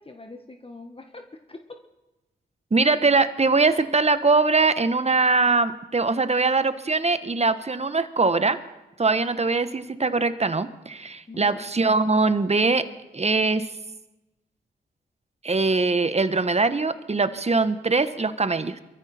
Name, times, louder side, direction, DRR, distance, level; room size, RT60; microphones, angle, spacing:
voice 1, 0.0-1.8 11.3-11.6, left 2 dB, 30° left, 5 dB, 1.6 m, -43 dB
voice 2, 2.7-8.6 9.0-12.9 13.1-13.7 15.4-18.8, right 3 dB, 35° right, 11 dB, 1.3 m, -22 dB
23.0 x 14.0 x 4.4 m, 1.0 s
cardioid pair, 45°, 19 cm